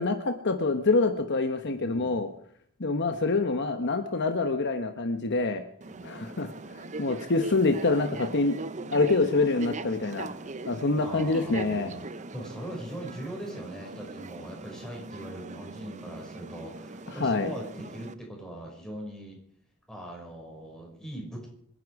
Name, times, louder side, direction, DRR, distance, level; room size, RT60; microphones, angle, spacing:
voice 1, 0.0-2.3 2.8-5.6 6.0-8.6 8.9-10.3 10.7-11.9 17.1-17.5, left 3 dB, 50° left, 7 dB, 1.1 m, -26 dB
voice 2, 1.8-2.2 5.9-6.2 11.0-12.0 12.3-19.4 19.9-21.5, right 1 dB, 5° left, -1 dB, 5.5 m, -41 dB
sound 1, 5.8-18.1, right 3 dB, 35° right, 0.7 m, -40 dB
27.0 x 10.5 x 4.8 m, 0.64 s
head